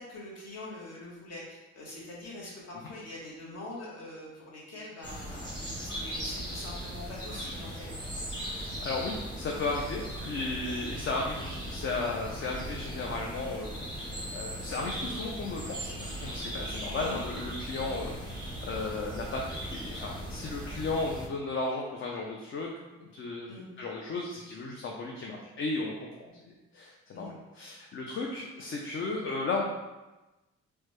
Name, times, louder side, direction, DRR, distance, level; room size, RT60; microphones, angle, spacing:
voice 1, 0.0-5.5 5.8-7.9 16.9-17.2 23.5-23.7 27.1-27.3, left 2 dB, 55° left, -4 dB, 1.1 m, -44 dB
sound 1, 5.0-21.3, equal, 15° left, 0.9 m, -38 dB
voice 2, 8.5-22.7 23.0-23.5 23.8-29.6, left 3 dB, 40° left, -1 dB, 0.5 m, -35 dB
3.2 x 2.1 x 3.1 m, 1.1 s
cardioid pair, 90°, 30 cm